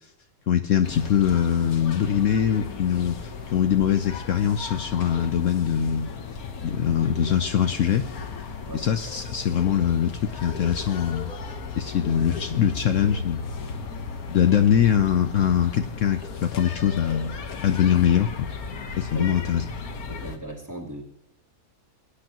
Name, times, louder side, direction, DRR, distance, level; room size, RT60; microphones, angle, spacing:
voice 1, 0.5-3.2 3.5-6.1 6.6-8.0 8.7-11.3 11.8-13.4 14.3-17.4 17.6-18.5 19.0-19.6, left 9 dB, 65° left, 8 dB, 1.0 m, -22 dB
sound 1, 0.8-20.4, left 5 dB, 85° left, 1.7 m, -36 dB
voice 2, 19.1-19.7 20.1-21.0, right 1 dB, 10° right, -1 dB, 2.6 m, -37 dB
21.0 x 10.0 x 2.9 m, 0.77 s
omnidirectional pair, 1.5 m